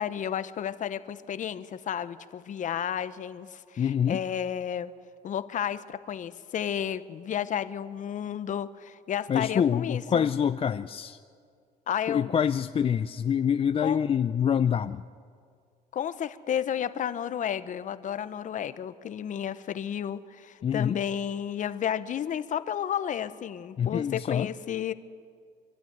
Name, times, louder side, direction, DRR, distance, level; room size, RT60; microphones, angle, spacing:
voice 1, 0.0-4.9 5.2-10.3 11.9-12.4 13.8-14.0 15.9-24.9, left 9 dB, 50° left, 13 dB, 0.9 m, -32 dB
voice 2, 3.8-4.2 9.3-11.2 12.1-15.0 20.6-21.0 23.8-24.5, left 8 dB, 35° left, 10 dB, 0.5 m, -26 dB
25.5 x 12.0 x 9.3 m, 2.2 s
cardioid pair, 110°, 17 cm